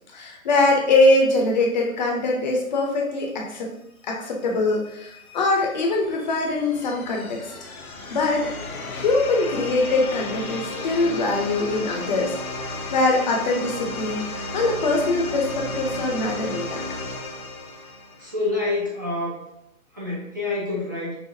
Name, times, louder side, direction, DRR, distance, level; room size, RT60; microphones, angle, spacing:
voice 1, 0.1-3.7 4.1-7.4 8.1-8.5 8.9-16.8, left 2 dB, 30° left, 0 dB, 0.7 m, -23 dB
sound 1, 4.7-18.5, left 3 dB, 85° left, 1.1 m, -34 dB
voice 2, 18.2-19.4 19.9-21.1, left 2 dB, 15° right, -6 dB, 0.5 m, -27 dB
5.7 x 2.0 x 2.7 m, 0.81 s
figure-of-eight pair, 145°, 42 cm